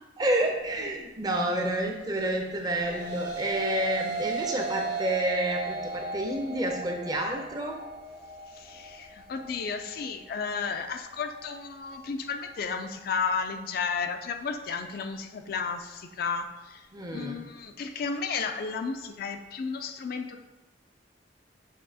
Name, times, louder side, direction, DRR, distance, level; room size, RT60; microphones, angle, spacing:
voice 1, 0.2-7.8 16.9-17.4, right 1 dB, 20° right, 2 dB, 0.5 m, -29 dB
sound 1, 2.4-11.6, right 4 dB, 85° right, 1.3 m, -36 dB
voice 2, 8.5-16.8 17.1-20.4, left 5 dB, 55° left, 7 dB, 0.3 m, -33 dB
6.7 x 2.8 x 2.7 m, 1.1 s
head